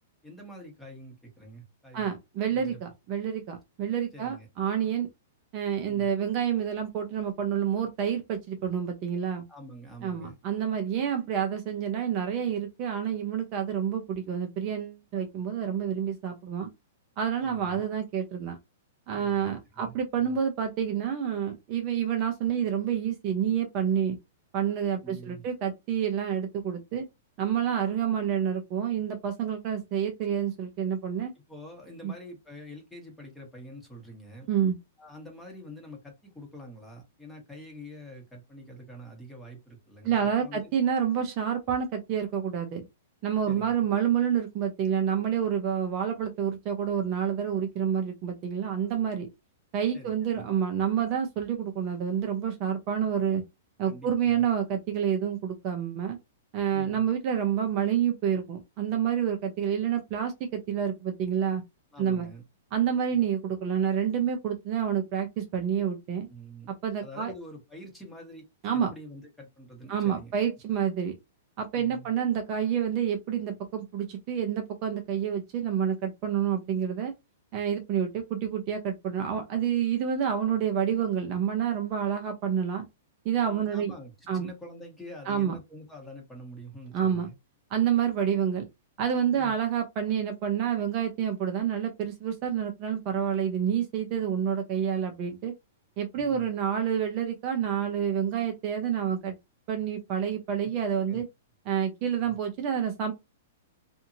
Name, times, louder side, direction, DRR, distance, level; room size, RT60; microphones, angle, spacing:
voice 1, 0.2-2.1 2.5-2.8 4.1-4.5 5.9-6.1 9.5-10.3 17.4-17.8 19.2-20.4 25.0-25.4 31.5-34.5 35.0-40.7 43.5-43.7 49.9-50.5 53.8-54.5 56.7-57.1 61.9-62.4 63.1-63.2 66.3-66.7 67.0-68.4 68.7-70.3 71.7-72.1 83.4-87.4 89.3-89.5 96.1-96.5 100.6-101.2, equal, 5° left, 1.3 m, -46 dB
voice 2, 1.9-5.1 5.5-9.4 10.0-16.7 17.2-18.6 19.1-24.2 24.5-27.1 27.4-31.3 32.0-32.1 34.5-34.7 40.0-42.8 43.2-49.3 49.7-53.4 53.8-56.2 56.5-61.6 62.0-62.3 62.7-66.3 66.8-67.3 68.6-68.9 69.9-71.1 71.6-77.1 77.5-82.8 83.2-83.9 84.3-84.5 85.3-85.6 86.9-87.3 87.7-88.7 89.0-95.5 96.0-99.4 99.7-101.3 101.6-103.1, right 8 dB, 40° right, 0.7 m, -28 dB
2.7 x 2.7 x 2.6 m
hypercardioid pair, 130°, 0 cm